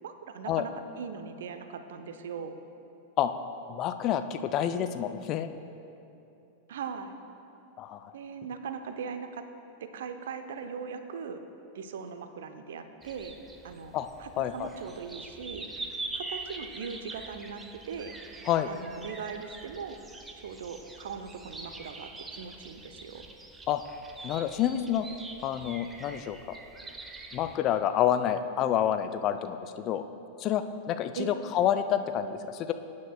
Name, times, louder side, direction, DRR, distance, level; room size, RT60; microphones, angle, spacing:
voice 1, 0.0-2.6 6.7-7.2 8.1-9.4 9.8-11.4 11.7-13.3 13.6-15.7 16.1-18.1 18.7-20.0 20.4-23.2 31.2-31.4, right 6 dB, 60° right, 8 dB, 0.7 m, -40 dB
voice 2, 3.7-5.5 7.8-8.1 13.9-14.1 14.4-14.7 18.5-18.7 23.7-23.8 24.2-25.1 25.4-26.4 27.3-30.0 30.4-32.7, left 10 dB, 35° left, 9 dB, 0.5 m, -28 dB
sound 1, 13.0-27.6, right 3 dB, 10° right, 0.8 m, -44 dB
21.5 x 9.5 x 2.3 m, 2.8 s
figure-of-eight pair, 90°, 0 cm